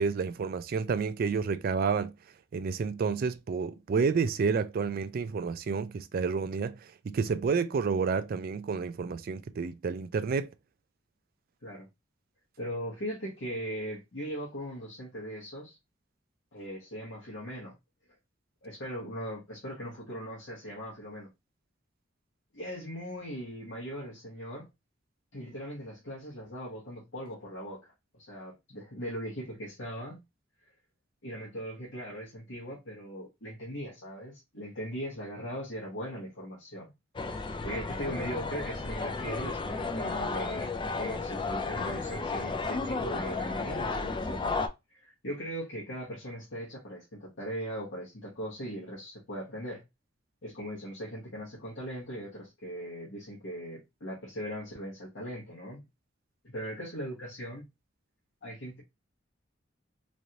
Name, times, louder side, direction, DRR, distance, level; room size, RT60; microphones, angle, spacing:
voice 1, 0.0-2.1 2.5-6.8 7.0-10.5, right 5 dB, 50° right, 0.3 m, -30 dB
voice 2, 12.6-15.8 16.5-17.8 18.6-21.3 22.5-24.7 25.3-27.9 28.2-30.2 31.2-36.9 37.6-44.6 44.9-49.8 50.4-55.8 56.4-57.6 58.4-58.8, equal, 70° left, 1.1 m, -39 dB
sound 1, 37.2-44.7, left 3 dB, 25° left, 0.4 m, -33 dB
3.1 x 2.5 x 2.8 m
head